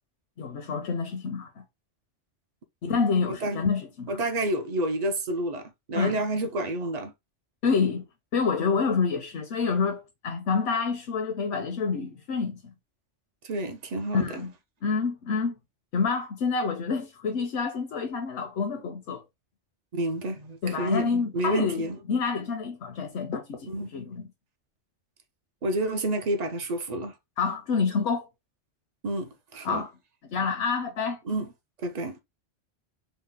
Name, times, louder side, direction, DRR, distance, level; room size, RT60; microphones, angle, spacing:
voice 1, 0.4-1.6 2.8-4.2 5.9-6.2 7.6-8.1 8.3-12.7 14.1-14.5 14.8-15.5 15.9-19.2 20.6-24.3 27.4-28.3 29.6-29.9 30.3-31.2, left 5 dB, 75° left, 0.9 m, -28 dB
voice 2, 3.3-3.6 4.1-7.1 13.4-14.3 19.9-22.0 23.7-23.9 25.6-27.1 29.0-29.8 31.3-31.5 31.8-32.2, right 1 dB, 45° right, 0.6 m, -29 dB
3.9 x 2.1 x 3.6 m
omnidirectional pair, 1.2 m